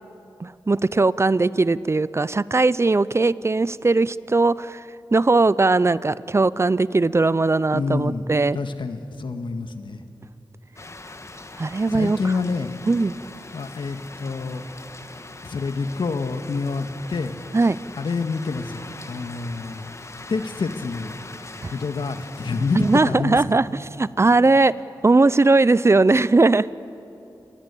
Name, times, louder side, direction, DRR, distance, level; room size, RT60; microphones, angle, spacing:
voice 1, 0.4-4.8 5.1-8.6 11.6-12.2 12.9-13.1 17.5-17.8 21.6-21.7 22.7-23.7 24.0-24.7 25.0-26.7, right 3 dB, 35° right, 18 dB, 0.5 m, -19 dB
voice 2, 7.7-8.3 8.5-10.0 11.9-12.7 13.5-14.6 15.4-17.3 18.0-19.9 20.3-21.2 21.7-23.4, left 4 dB, 75° left, 8 dB, 1.6 m, -27 dB
sound 1, 10.8-23.0, left 2 dB, 35° left, 1.4 m, -41 dB
29.0 x 22.5 x 8.4 m, 2.8 s
wide cardioid pair, 70°, 8 cm